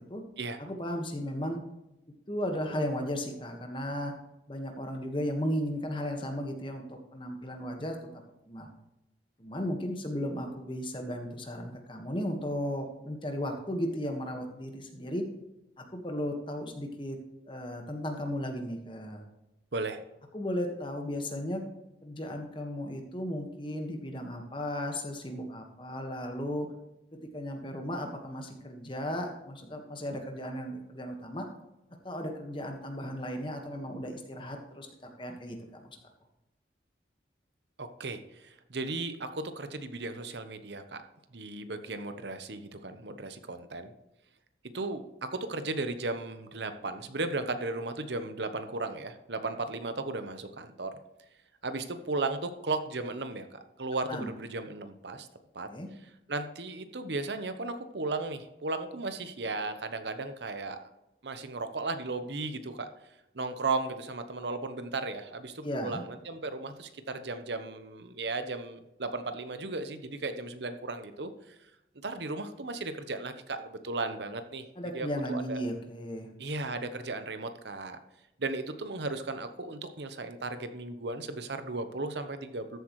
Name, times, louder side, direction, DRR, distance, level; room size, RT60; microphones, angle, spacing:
voice 1, 0.6-1.6 2.3-4.1 4.5-8.0 8.5-8.7 9.4-15.2 15.8-17.2 17.5-19.2 20.3-21.6 22.0-26.7 27.3-31.5 32.0-34.9 35.2-36.0 54.1-54.3 55.7-55.9 65.6-66.0 74.8-76.3, equal, 30° left, 3 dB, 1.5 m, -35 dB
voice 2, 37.8-41.0 41.3-43.9 44.7-51.0 51.6-55.3 55.5-55.7 56.0-60.8 61.2-62.9 63.3-71.6 72.0-74.6 74.9-75.7 76.4-78.0 78.4-82.8, right 3 dB, 75° right, 9 dB, 0.9 m, -35 dB
14.0 x 8.0 x 3.1 m, 0.92 s
head